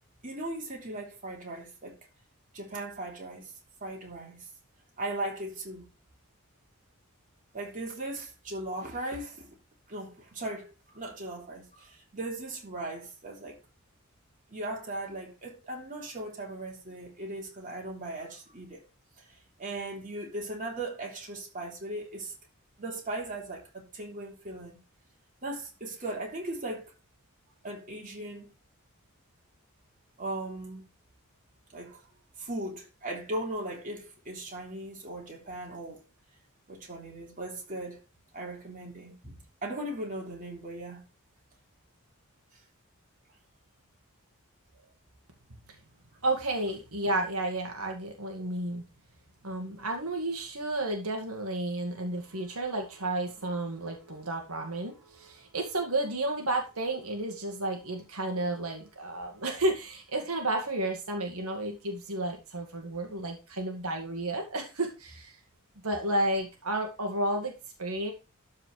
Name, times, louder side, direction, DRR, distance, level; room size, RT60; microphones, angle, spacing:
voice 1, 0.2-2.0 2.5-3.5 3.8-4.4 5.0-5.8 7.5-9.5 9.9-13.6 14.5-18.8 19.6-22.3 22.8-24.8 25.4-26.9 27.6-28.5 30.2-30.8 31.7-32.0 32.4-36.0 36.7-38.0 38.3-41.0, right 1 dB, 35° right, 3.3 m, -38 dB
voice 2, 46.2-48.8 49.4-65.4 65.8-67.5 67.8-68.1, right 1 dB, 85° right, 2.1 m, -32 dB
12.5 x 4.9 x 4.8 m
head